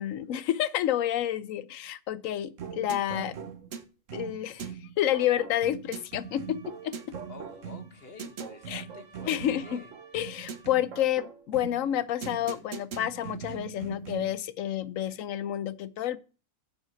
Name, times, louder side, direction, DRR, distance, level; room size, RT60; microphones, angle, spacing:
voice 1, 0.0-3.4 4.1-7.1 8.7-8.8 9.2-9.8 10.1-16.2, left 11 dB, 65° left, 1.0 m, -29 dB
sound 1, 2.6-14.4, right 7 dB, 60° right, 1.2 m, -41 dB
sound 2, 5.9-10.8, right 3 dB, 85° right, 1.7 m, -58 dB
voice 2, 7.3-9.9, left 4 dB, 40° left, 1.5 m, -49 dB
7.6 x 5.6 x 7.7 m
omnidirectional pair, 1.6 m